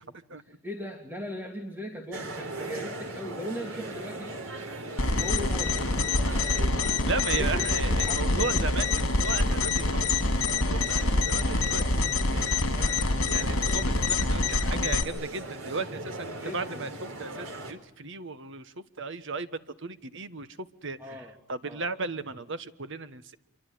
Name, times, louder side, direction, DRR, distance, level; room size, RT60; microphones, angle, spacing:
voice 1, 0.5-4.3 5.2-5.8 7.4-9.1 12.7-12.9 16.4-16.9 21.0-21.3 21.6-21.9, equal, 10° right, 2 dB, 2.9 m, -39 dB
sound 1, 2.1-17.7, right 2 dB, 80° right, 4.3 m, -39 dB
sound 2, 5.0-15.0, left 3 dB, 80° left, 2.8 m, -26 dB
voice 2, 7.1-11.8 13.3-20.5 20.8-23.3, right 4 dB, 60° right, 12 dB, 1.5 m, -36 dB
26.5 x 24.0 x 9.3 m, 0.73 s
head